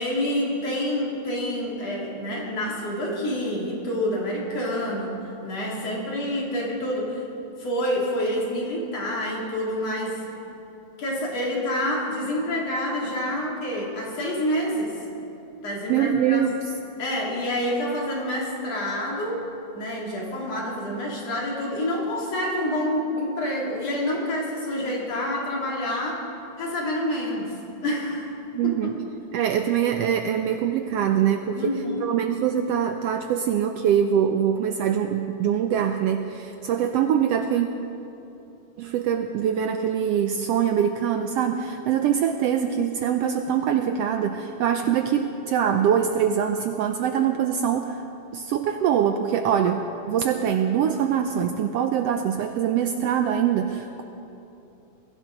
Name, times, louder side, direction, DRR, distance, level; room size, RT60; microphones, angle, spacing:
voice 1, 0.0-7.2 7.6-10.2 11.0-15.0 15.6-16.4 17.0-19.4 19.7-26.2 26.6-27.5 27.8-28.3 28.6-28.9 31.6-32.0, left 1 dB, 60° left, -3 dB, 3.9 m, -27 dB
voice 2, 15.9-16.6 28.5-28.9 29.3-31.7 32.0-37.7 38.8-48.0 48.3-54.0, right 8 dB, 80° right, 6 dB, 1.4 m, -23 dB
21.0 x 16.5 x 3.9 m, 2.8 s
omnidirectional pair, 3.4 m